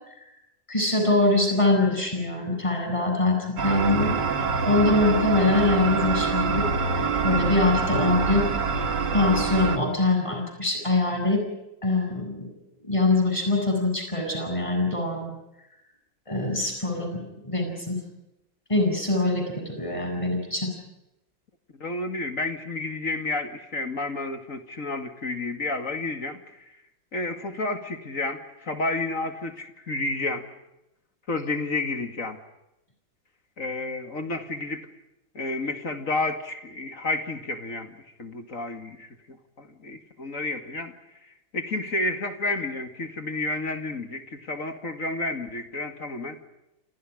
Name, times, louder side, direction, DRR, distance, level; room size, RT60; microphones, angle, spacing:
voice 1, 0.7-6.7 7.0-8.5 9.1-11.4 11.8-12.5 12.8-15.3 16.3-18.0 18.7-20.7, left 2 dB, 15° left, 3 dB, 8.1 m, -24 dB
sound 1, 3.6-9.8, right 4 dB, 60° right, 2.4 m, -25 dB
voice 2, 21.8-26.4 27.1-30.5 31.3-32.4 33.6-34.9 35.3-40.9 41.5-46.4, left 2 dB, 40° left, 7 dB, 2.5 m, -31 dB
28.5 x 28.5 x 5.0 m, 0.89 s
omnidirectional pair, 2.1 m